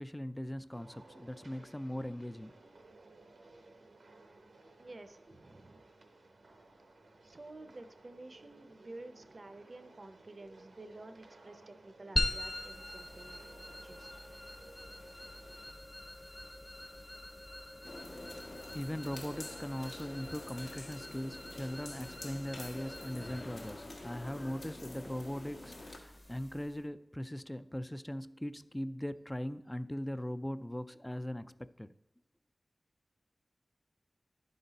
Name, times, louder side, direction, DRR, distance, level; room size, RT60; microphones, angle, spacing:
voice 1, 0.0-2.6 18.1-18.2 18.7-31.9, equal, 15° left, 0.3 m, -40 dB
sound 1, 0.7-15.7, right 2 dB, 85° right, 0.8 m, -58 dB
voice 2, 4.8-5.8 7.2-14.1, right 2 dB, 55° right, 0.6 m, -51 dB
sound 2, 12.2-26.8, left 1 dB, 30° left, 1.0 m, -43 dB
sound 3, 17.8-26.0, left 2 dB, 65° left, 1.0 m, -47 dB
11.0 x 4.0 x 4.0 m
wide cardioid pair, 50°, 0 cm